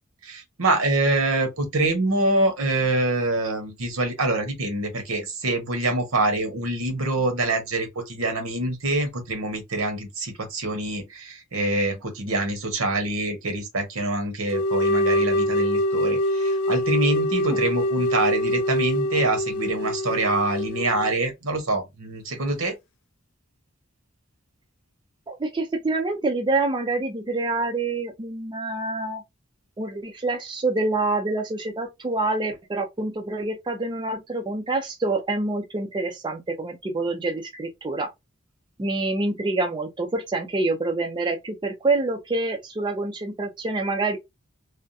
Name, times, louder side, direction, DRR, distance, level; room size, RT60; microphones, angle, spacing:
voice 1, 0.2-22.7, right 2 dB, 80° right, 1.1 m, -25 dB
sound 1, 14.5-21.3, equal, 80° left, 0.4 m, -24 dB
voice 2, 25.3-29.2 29.8-38.1 38.8-44.2, right 2 dB, 20° right, 0.5 m, -26 dB
3.4 x 2.1 x 2.6 m
head